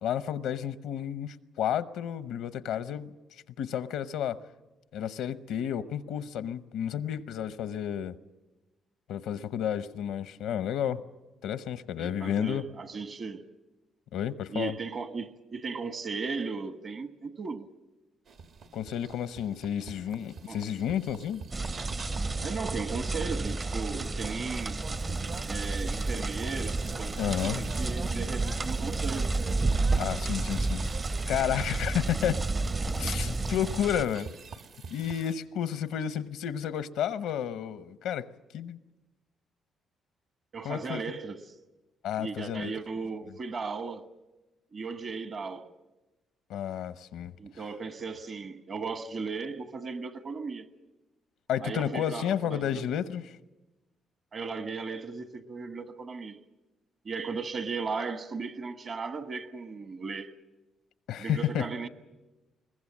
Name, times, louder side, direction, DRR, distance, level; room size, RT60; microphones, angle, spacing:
voice 1, 0.0-3.1 3.6-4.4 4.9-8.1 9.1-11.0 11.4-12.6 14.1-14.7 18.7-21.4 27.2-27.7 29.9-30.8 31.3-32.4 33.0-34.3 34.9-38.3 38.5-38.8 40.6-41.2 42.0-42.7 46.5-47.3 51.5-53.2 61.1-61.7, left 9 dB, 85° left, 0.8 m, -31 dB
voice 2, 12.0-13.5 14.5-17.7 20.5-20.6 22.4-24.8 25.4-29.3 40.5-41.5 42.2-44.1 44.7-45.7 47.4-50.7 51.6-52.8 54.3-56.4 57.0-60.3 61.2-61.9, right 4 dB, 50° right, 1.3 m, -36 dB
sound 1, 18.3-35.3, right 5 dB, 70° right, 1.4 m, -44 dB
sound 2, 21.5-34.1, right 3 dB, 30° right, 0.7 m, -31 dB
22.5 x 20.0 x 7.3 m
cardioid pair, 90°, 0 cm